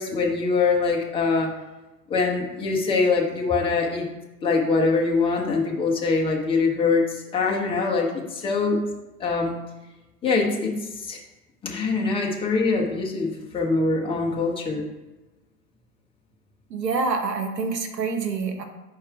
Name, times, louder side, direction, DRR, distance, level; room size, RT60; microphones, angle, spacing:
voice 1, 0.0-1.5 2.1-4.1 4.4-8.9 9.2-9.5 10.2-11.2 11.6-14.8, left 4 dB, 10° left, -1 dB, 0.8 m, -23 dB
voice 2, 16.7-18.6, right 4 dB, 85° right, 5 dB, 1.1 m, -26 dB
4.7 x 4.6 x 4.8 m, 1.1 s
hypercardioid pair, 115°, 49 cm